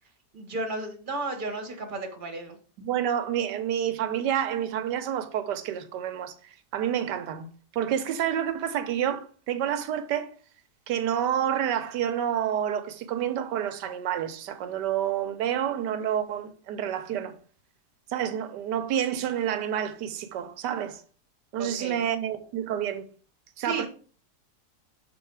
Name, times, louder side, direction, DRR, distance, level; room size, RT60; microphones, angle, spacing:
voice 1, 0.3-2.6 21.6-22.1 23.6-23.9, right 2 dB, 35° right, 1.2 m, -33 dB
voice 2, 2.8-6.3 6.7-10.3 10.9-17.3 18.1-21.0 21.5-23.0 23.6-23.9, right 10 dB, 85° right, 1.3 m, -29 dB
6.1 x 4.3 x 4.6 m
omnidirectional pair, 1.8 m